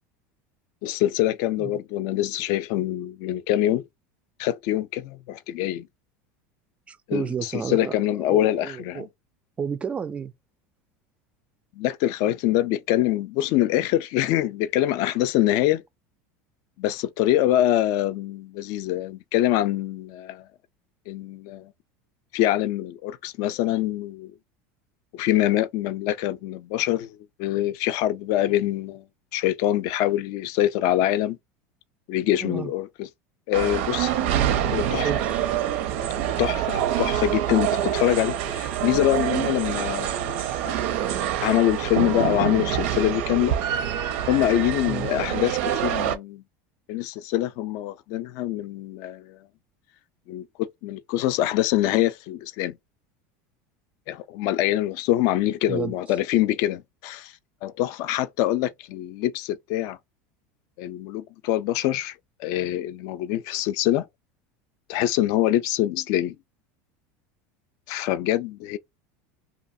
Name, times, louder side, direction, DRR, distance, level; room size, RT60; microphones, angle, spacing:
voice 1, 0.8-3.8 4.4-5.9 7.1-9.1 11.8-15.8 16.8-20.4 21.1-21.7 22.3-24.3 25.1-29.0 29.3-31.4 32.1-33.1 33.5-35.2 36.4-40.3 40.6-40.7 41.4-43.6 44.3-46.4 46.9-49.4 50.3-52.8 54.1-57.3 57.6-60.0 60.8-64.1 64.9-66.4 67.9-68.8, left 13 dB, 60° left, 0.4 m, -25 dB
voice 2, 6.9-8.0 8.3-9.1 9.6-10.3 32.4-32.7 34.9-35.5 44.9-45.1 55.7-55.9, right 7 dB, 20° right, 0.3 m, -31 dB
sound 1, 33.5-46.2, right 10 dB, 80° right, 0.6 m, -26 dB
2.8 x 2.4 x 2.6 m
supercardioid pair, 135°, 7 cm